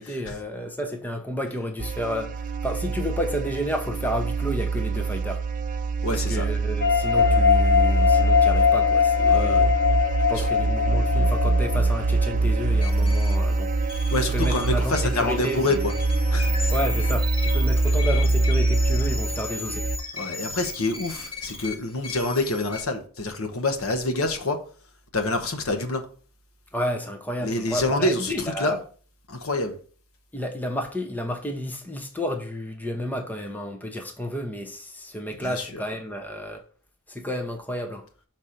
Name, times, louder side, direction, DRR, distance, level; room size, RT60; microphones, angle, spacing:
voice 1, 0.0-5.4 6.1-9.7 10.3-13.7 14.3-15.8 16.7-19.9 26.7-28.8 30.3-36.6 37.1-38.1, equal, 10° left, 0.6 m, -31 dB
sound 1, 1.8-20.0, right 2 dB, 35° right, 0.5 m, -24 dB
voice 2, 6.0-6.5 9.3-9.6 10.3-10.5 14.1-15.9 16.3-16.7 20.1-24.6 25.1-26.0 27.4-28.8 29.3-29.7 35.4-35.8, left 2 dB, 70° left, 1.1 m, -27 dB
sound 2, 6.8-12.0, left 7 dB, 50° left, 0.8 m, -21 dB
sound 3, 12.8-22.8, left 2 dB, 25° left, 1.3 m, -36 dB
5.9 x 4.3 x 5.0 m
head